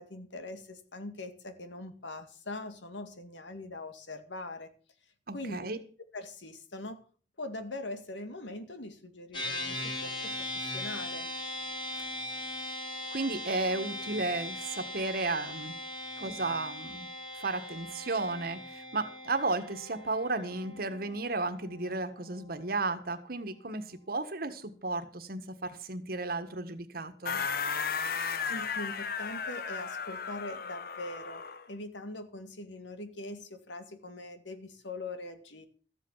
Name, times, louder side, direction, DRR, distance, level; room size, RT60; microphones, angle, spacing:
voice 1, 0.0-4.7 5.3-5.7 6.1-7.0 7.4-11.3 28.5-35.7, left 2 dB, 90° left, 2.1 m, -42 dB
voice 2, 5.3-5.8 13.1-15.8 16.2-17.1 17.3-27.4, right 3 dB, 55° right, 1.5 m, -34 dB
sound 1, 9.3-22.9, left 1 dB, 25° left, 4.4 m, -40 dB
sound 2, 27.2-31.7, left 6 dB, 55° left, 1.0 m, -35 dB
14.0 x 8.0 x 7.3 m
head